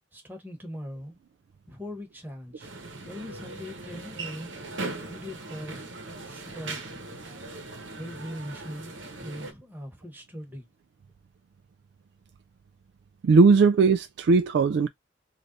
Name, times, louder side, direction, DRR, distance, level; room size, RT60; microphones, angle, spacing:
voice 1, 0.1-1.2 1.7-2.7 3.0-4.6 5.1-5.8 6.2-7.0 8.0-8.9 9.2-10.7, equal, 10° right, 1.1 m, -40 dB
sound 1, 2.6-9.5, right 3 dB, 90° right, 1.0 m, -39 dB
voice 2, 13.2-14.9, right 4 dB, 65° right, 0.3 m, -19 dB
3.3 x 2.5 x 3.8 m
head